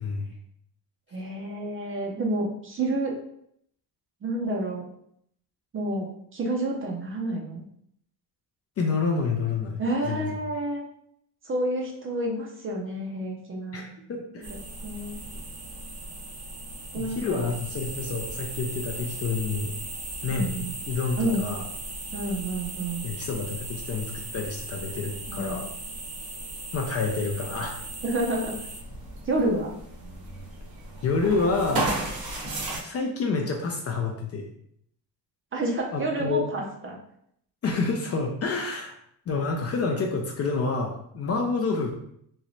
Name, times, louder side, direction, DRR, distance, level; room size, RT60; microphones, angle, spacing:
voice 1, 0.0-0.3 8.8-9.8 10.0-10.3 13.7-14.5 16.9-19.7 20.2-21.6 23.0-25.7 26.7-27.8 31.0-31.9 32.8-34.5 35.9-36.4 37.6-39.0 39.3-41.9, left 4 dB, 35° left, 1 dB, 0.4 m, -28 dB
voice 2, 1.1-3.1 4.2-4.9 5.7-7.6 9.8-10.8 11.4-13.9 14.8-15.2 16.9-17.5 20.3-20.7 21.2-21.5 22.1-23.0 25.3-25.6 28.0-28.6 29.3-29.7 35.5-37.0, right 1 dB, 30° right, 0 dB, 0.5 m, -29 dB
sound 1, 14.4-32.8, right 2 dB, 55° right, 0.9 m, -36 dB
3.1 x 2.9 x 2.6 m, 0.70 s
cardioid pair, 145°, 43 cm